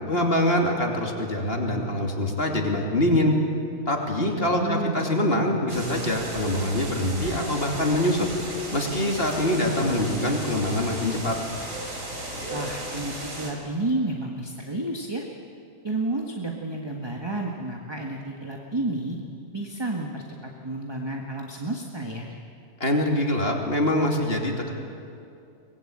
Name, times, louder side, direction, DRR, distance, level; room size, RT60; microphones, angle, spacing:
voice 1, 0.1-3.3 3.9-8.3 8.7-11.4 22.8-24.7, left 1 dB, 45° left, 1 dB, 2.8 m, -24 dB
voice 2, 4.2-5.0 12.5-15.2 15.8-19.2 19.5-22.3, right 2 dB, 20° right, 1 dB, 1.6 m, -31 dB
sound 1, 5.7-13.5, right 1 dB, 75° right, 4.2 m, -35 dB
23.5 x 20.5 x 8.8 m, 2.5 s
omnidirectional pair, 1.4 m